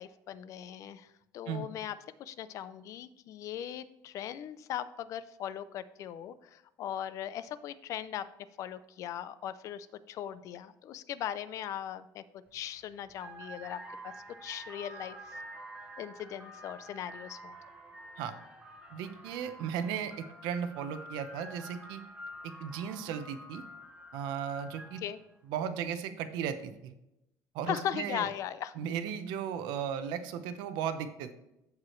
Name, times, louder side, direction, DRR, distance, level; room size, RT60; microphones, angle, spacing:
voice 1, 0.0-8.3 8.6-12.2 12.5-14.1 14.4-15.4 16.0-17.6 25.0-25.2 27.7-28.7, left 10 dB, 45° left, 14 dB, 0.5 m, -39 dB
sound 1, 12.5-12.7 13.1-25.2, right 1 dB, 10° right, 1.1 m, -48 dB
voice 2, 18.9-22.0 22.4-23.6 24.1-25.0 25.5-26.9 27.5-28.3 28.8-31.3, right 8 dB, 90° right, 10 dB, 0.9 m, -36 dB
14.5 x 4.8 x 3.1 m, 0.86 s
cardioid pair, 170°, 7 cm